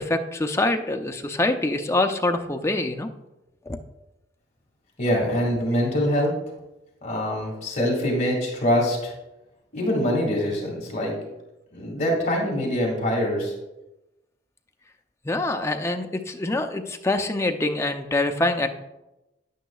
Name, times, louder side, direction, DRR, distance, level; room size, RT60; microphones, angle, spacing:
voice 1, 0.0-3.1 3.7-3.8 15.2-18.7, left 2 dB, 15° left, 5 dB, 0.4 m, -25 dB
voice 2, 5.0-6.3 7.0-9.1 9.7-11.1 11.7-13.5, equal, 40° left, -2 dB, 2.0 m, -24 dB
10.0 x 9.1 x 2.3 m, 0.97 s
head